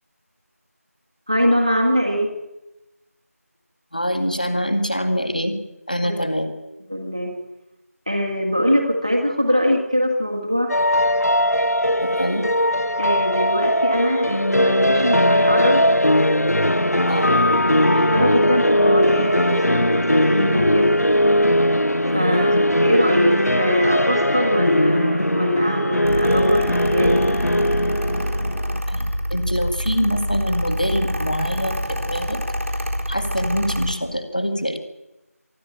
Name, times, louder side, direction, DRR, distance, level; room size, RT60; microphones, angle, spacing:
voice 1, 1.3-2.3 6.0-6.2 6.9-7.3 8.1-10.7 13.0-15.8 17.1-20.9 22.0-27.2, equal, 25° right, 0 dB, 1.8 m, -22 dB
voice 2, 3.9-5.6 5.9-6.5 12.0-12.5 17.1-17.3 22.1-22.6 28.9-32.4 33.1-34.8, equal, 30° left, 9 dB, 1.9 m, -24 dB
sound 1, 10.7-28.8, equal, 70° left, 1.1 m, -19 dB
Mechanical fan, 26.0-33.9, equal, 55° right, 3.9 m, -26 dB
24.5 x 12.0 x 8.9 m, 0.98 s
figure-of-eight pair, 180°, 9 cm